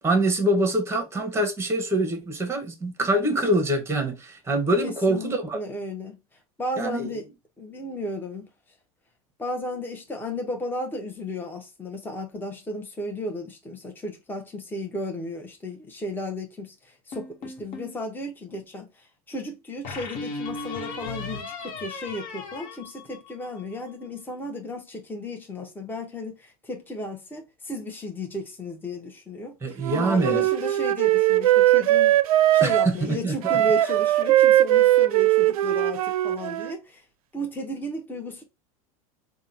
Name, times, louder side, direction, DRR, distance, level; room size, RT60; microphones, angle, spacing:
voice 1, 0.0-5.6 6.8-7.2 29.6-30.4 32.6-33.6, right 1 dB, 15° right, 1.3 m, -25 dB
voice 2, 4.8-6.2 6.6-7.3 7.6-8.5 9.4-32.2 32.5-37.0 37.3-38.4, left 1 dB, 10° left, 1.1 m, -34 dB
sound 1, 17.1-18.0 19.8-23.6, left 3 dB, 45° left, 1.4 m, -36 dB
Wind instrument woodwind instrument, 29.8-32.9 33.4-36.7, right 14 dB, 75° right, 0.4 m, -20 dB
3.6 x 2.4 x 4.3 m
hypercardioid pair, 100°, 18 cm